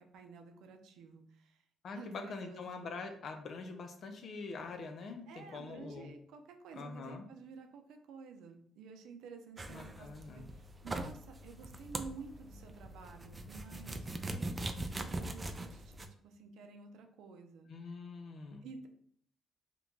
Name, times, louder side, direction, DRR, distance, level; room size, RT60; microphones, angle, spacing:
voice 1, 0.0-1.6 1.9-2.9 5.3-16.0 16.2-17.7 18.6-18.9, right 5 dB, 85° right, 5 dB, 0.5 m, -51 dB
voice 2, 1.8-6.1 6.7-7.3 9.7-10.4 17.7-18.7, left 4 dB, 60° left, 4 dB, 0.5 m, -44 dB
sound 1, 9.6-16.1, right 2 dB, 25° right, 0.4 m, -42 dB
2.9 x 2.2 x 3.8 m, 0.62 s
cardioid pair, 90°, 0 cm